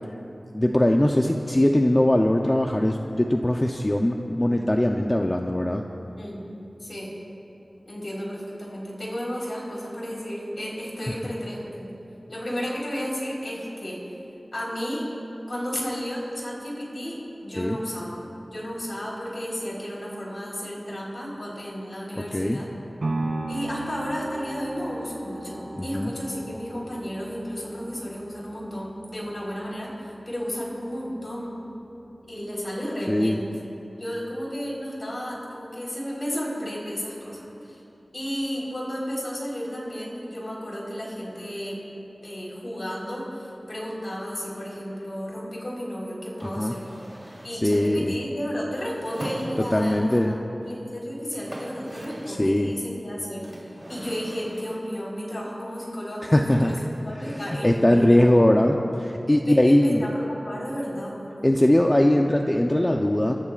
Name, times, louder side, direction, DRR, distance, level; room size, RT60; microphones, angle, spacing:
voice 1, 0.5-5.8 17.6-17.8 22.3-22.6 25.7-26.1 33.1-33.4 46.4-46.7 47.6-48.1 49.7-50.3 52.3-52.7 56.2-56.7 57.2-60.0 61.4-63.4, left 1 dB, 25° left, 2 dB, 0.7 m, -21 dB
voice 2, 6.1-6.4 6.8-7.1 7.8-11.9 12.3-14.1 14.5-15.1 15.5-18.2 18.5-22.7 23.5-31.6 32.3-33.5 34.0-37.8 38.1-41.8 42.2-46.9 47.4-50.3 50.6-58.8 59.5-61.3, equal, 55° left, -4 dB, 4.0 m, -33 dB
sound 1, 23.0-31.1 31.6-31.7, right 2 dB, 85° right, 2.3 m, -37 dB
sound 2, 46.4-47.7 48.9-50.0 50.9-51.0 51.2-52.5 53.4-54.9 56.5-57.1, right 1 dB, 25° right, 2.9 m, -41 dB
29.5 x 14.0 x 2.5 m, 3.0 s
wide cardioid pair, 70°, 0 cm